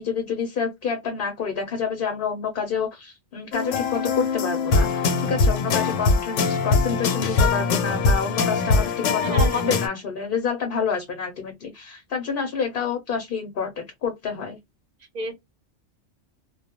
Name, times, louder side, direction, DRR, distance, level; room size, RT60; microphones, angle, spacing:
voice 1, 0.0-14.6, left 6 dB, 55° left, 0.7 m, -28 dB
sound 1, 3.5-9.9, left 4 dB, 85° left, 0.9 m, -22 dB
voice 2, 9.2-10.0 15.1-15.4, right 3 dB, 45° right, 0.6 m, -31 dB
2.2 x 2.2 x 2.8 m
omnidirectional pair, 1.3 m